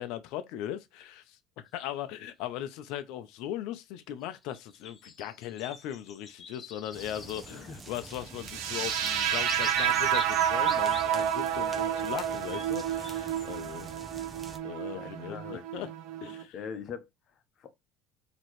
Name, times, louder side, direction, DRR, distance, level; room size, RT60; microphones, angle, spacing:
voice 1, 0.0-1.4 1.7-13.9 14.6-15.4 15.7-15.9 16.2-16.5, left 12 dB, 70° left, 0.6 m, -38 dB
sound 1, 4.3-8.3 8.6-11.5 12.5-13.5, left 5 dB, 25° left, 0.5 m, -44 dB
sound 2, 6.9-14.6, right 3 dB, 20° right, 0.7 m, -47 dB
voice 2, 7.5-7.8 14.9-15.9 16.5-17.1 17.6-17.7, left 7 dB, 40° left, 0.9 m, -42 dB
sound 3, 8.4-16.4, right 10 dB, 80° right, 0.8 m, -30 dB
4.2 x 3.0 x 3.1 m
cardioid pair, 150°, 0 cm